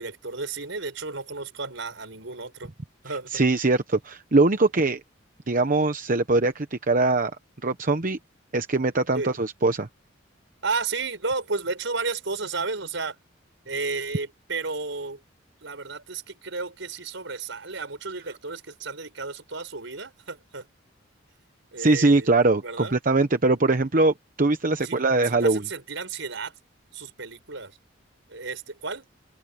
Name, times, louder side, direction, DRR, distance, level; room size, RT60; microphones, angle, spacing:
voice 1, 0.0-2.7 3.0-3.4 9.1-9.4 10.6-13.2 13.7-15.2 15.6-20.6 21.7-22.3 22.6-22.9 24.8-25.0 25.3-26.5 26.9-27.8 28.3-29.1, right 4 dB, 75° right, 6.0 m, -32 dB
voice 2, 3.1-5.0 5.5-7.3 7.6-8.2 8.5-9.9 21.8-25.6, right 2 dB, 45° right, 1.0 m, -22 dB
open air
head